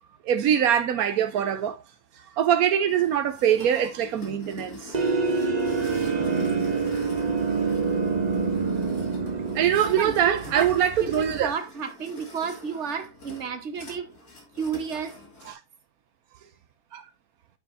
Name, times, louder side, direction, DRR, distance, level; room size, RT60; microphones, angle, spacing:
voice 1, 0.3-1.8 2.4-5.0 9.5-11.5 15.5-15.6 16.9-17.0, right 9 dB, 80° right, 1.2 m, -23 dB
sound 1, 2.9-15.5, left 2 dB, 80° left, 2.9 m, -45 dB
sound 2, 4.9-11.5, right 4 dB, 30° right, 0.9 m, -27 dB
voice 2, 9.8-14.1 14.5-15.2, right 6 dB, 50° right, 1.5 m, -32 dB
10.5 x 6.6 x 2.6 m
omnidirectional pair, 1.5 m